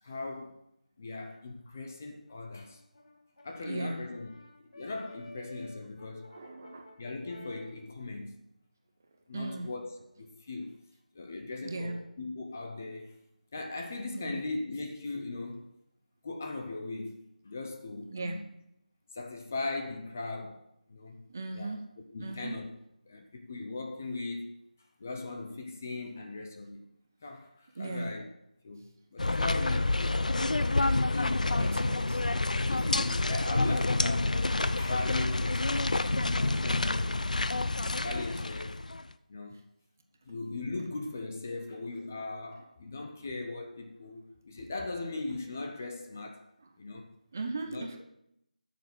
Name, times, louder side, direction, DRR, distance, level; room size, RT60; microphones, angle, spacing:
voice 1, 0.0-0.6 1.0-2.8 3.4-4.3 4.7-6.4 7.0-8.4 9.3-10.8 11.1-13.2 13.5-15.7 16.2-18.5 19.1-20.6 20.9-21.2 21.5-21.8 22.1-22.7 23.1-24.7 25.0-26.8 27.2-28.3 28.6-30.7 31.1-31.8 32.7-37.2 38.0-38.8 39.3-39.6 40.2-46.5 46.8-47.1 47.7-48.0, left 2 dB, 20° left, 0.6 m, -39 dB
Brass instrument, 2.3-7.7, left 1 dB, 45° left, 1.7 m, -53 dB
voice 2, 3.6-4.0 6.3-6.9 9.3-9.7 11.6-12.0 14.1-14.4 18.1-18.4 21.3-21.8 22.2-22.6 27.8-28.1 31.6-32.2 47.3-48.0, right 2 dB, 20° right, 0.7 m, -37 dB
sound 1, 29.2-39.1, left 2 dB, 65° left, 0.6 m, -28 dB
11.5 x 6.8 x 6.0 m
figure-of-eight pair, 175°, 4 cm